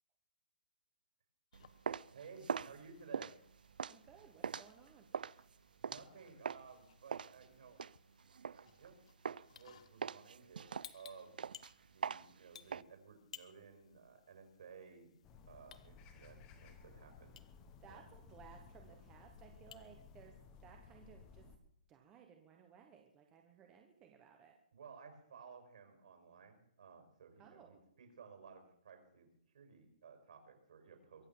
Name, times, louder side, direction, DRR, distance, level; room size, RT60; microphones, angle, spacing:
sound 1, 1.5-20.3, left 8 dB, 45° left, 1.0 m, -62 dB
sound 2, 1.5-6.7 7.1-8.9 9.2-9.6 10.0-12.8, right 6 dB, 85° right, 0.5 m, -42 dB
voice 1, 2.1-3.3 5.8-7.8 8.5-9.0 9.4-11.4 11.9-15.1 15.5-17.4 17.9-18.0 24.7-29.3 29.5-31.3, right 5 dB, 55° right, 5 dB, 5.4 m, -56 dB
voice 2, 3.9-5.1 17.8-20.3 20.6-21.5 21.9-24.6 27.4-27.8, right 7 dB, 10° right, 3 dB, 1.0 m, -60 dB
sound 3, 15.2-21.6, left 5 dB, 15° left, 1.2 m, -58 dB
22.5 x 8.2 x 7.3 m, 0.69 s
hypercardioid pair, 175°, 5 cm